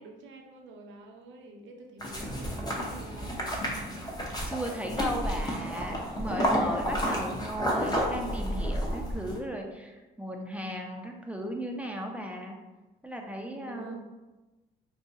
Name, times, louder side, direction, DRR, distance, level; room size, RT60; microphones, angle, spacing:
voice 1, 0.0-3.6 13.5-14.0, right 2 dB, 75° right, 2 dB, 0.5 m, -48 dB
sound 1, 2.0-9.4, equal, 20° left, 0.7 m, -31 dB
voice 2, 4.5-12.6 13.0-14.0, equal, 5° right, 1 dB, 0.4 m, -36 dB
2.7 x 2.4 x 4.0 m, 1.1 s
cardioid pair, 90°, 20 cm